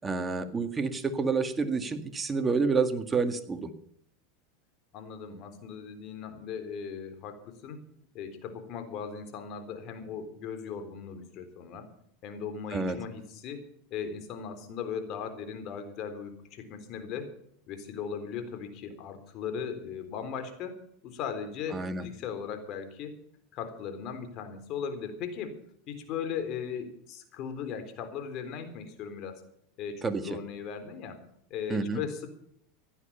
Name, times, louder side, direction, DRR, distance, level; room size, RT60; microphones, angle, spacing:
voice 1, 0.0-3.7 12.7-13.0 21.7-22.1 30.0-30.4 31.7-32.0, right 4 dB, 20° right, 8 dB, 1.8 m, -29 dB
voice 2, 4.9-7.8 8.1-11.9 12.2-17.4 17.7-23.2 23.5-25.6 25.9-29.4 29.8-31.2 31.5-32.3, left 7 dB, 50° left, 8 dB, 3.7 m, -38 dB
16.0 x 11.0 x 5.7 m, 0.70 s
supercardioid pair, 110°, 0 cm